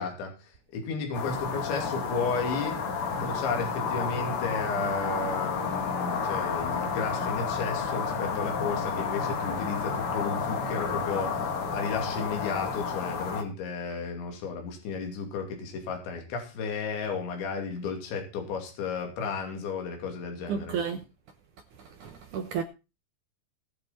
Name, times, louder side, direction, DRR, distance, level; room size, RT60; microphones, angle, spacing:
voice 1, 0.0-2.8 3.1-20.8, left 4 dB, 75° left, 5.2 m, -33 dB
sound 1, 1.1-13.4, left 5 dB, 50° left, 1.7 m, -31 dB
voice 2, 20.5-21.0 22.0-22.6, right 7 dB, 80° right, 1.8 m, -31 dB
21.0 x 7.4 x 4.3 m
omnidirectional pair, 5.2 m